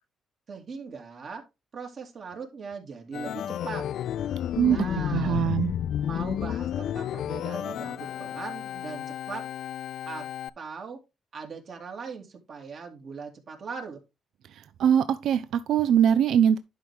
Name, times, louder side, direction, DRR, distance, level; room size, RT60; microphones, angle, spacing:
voice 1, 0.5-1.4 1.7-3.9 4.6-5.5 6.1-9.5 10.0-10.3 10.6-11.0 11.3-14.0, right 5 dB, 55° right, 2.4 m, -40 dB
Organ, 3.1-10.5, left 10 dB, 75° left, 0.4 m, -32 dB
voice 2, 4.5-4.8 5.1-5.7 14.5-16.6, right 9 dB, 75° right, 0.5 m, -22 dB
11.0 x 4.7 x 3.5 m
cardioid pair, 90°, 0 cm